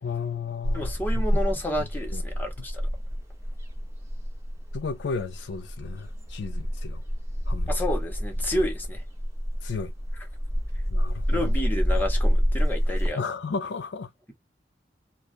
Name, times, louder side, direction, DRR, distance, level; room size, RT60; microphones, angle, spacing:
voice 1, 0.0-1.4 2.1-2.2 4.7-7.0 7.5-7.7 9.6-9.9 10.9-11.5 13.2-14.1, left 5 dB, 75° left, 0.4 m, -33 dB
sound 1, 0.6-13.1, equal, 15° right, 0.9 m, -28 dB
voice 2, 0.7-2.9 7.7-9.0 11.3-13.3, left 1 dB, 10° left, 0.9 m, -30 dB
2.4 x 2.2 x 2.5 m
head